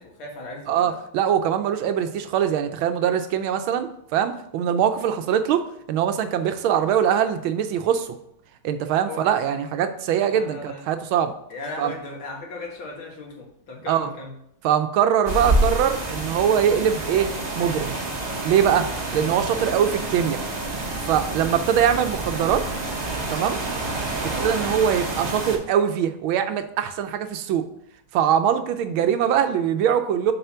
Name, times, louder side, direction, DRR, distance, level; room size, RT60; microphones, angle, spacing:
voice 1, 0.0-1.0 9.0-9.2 10.3-10.8 11.5-14.3 24.3-24.5, left 3 dB, 75° left, -1 dB, 2.4 m, -37 dB
voice 2, 0.7-8.1 8.6-11.3 11.8-11.9 13.9-14.1 14.6-17.9 18.4-20.4 21.0-22.7 23.3-23.6 24.2-27.7 28.1-30.3, right 9 dB, 80° right, 9 dB, 1.5 m, -22 dB
sound 1, 15.3-25.6, right 2 dB, 30° right, 0.7 m, -28 dB
6.7 x 4.3 x 5.7 m, 0.72 s
omnidirectional pair, 2.2 m